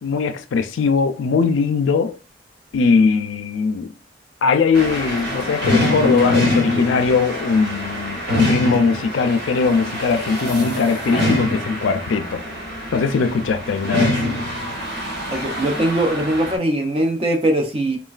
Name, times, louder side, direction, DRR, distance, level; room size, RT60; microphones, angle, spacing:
voice 1, 0.0-2.2 2.7-3.9 4.4-12.4 12.9-14.1, left 5 dB, 90° left, 0.4 m, -20 dB
sound 1, 4.7-16.6, left 1 dB, 65° right, 1.1 m, -24 dB
voice 2, 15.3-18.0, right 1 dB, 30° right, 0.5 m, -21 dB
3.1 x 2.2 x 2.4 m
head